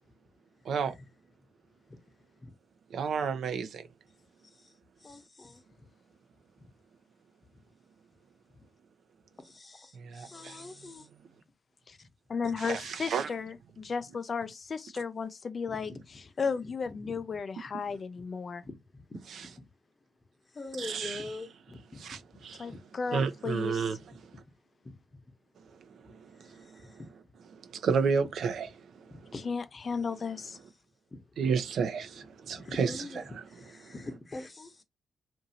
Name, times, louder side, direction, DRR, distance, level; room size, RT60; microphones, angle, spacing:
voice 1, 2.9-3.8 10.0-10.6 12.6-13.3 19.3-19.5 20.8-21.3 22.0-22.7 23.1-24.0 26.4-26.6 27.7-28.7 31.4-33.0, right 6 dB, 70° right, 0.5 m, -31 dB
voice 2, 5.0-5.6 9.4-11.1 12.5-12.6 15.7-16.0 17.0-17.4 18.6-19.2 19.6-19.7 20.5-22.0 22.7-22.8 24.8-25.0 26.6-27.1 29.1-29.4 31.1-31.5 32.4-34.8, left 2 dB, 35° left, 0.9 m, -44 dB
voice 3, 12.3-18.6 22.6-23.9 29.3-30.6, left 5 dB, 50° left, 0.4 m, -34 dB
2.7 x 2.6 x 2.7 m
supercardioid pair, 45°, 0 cm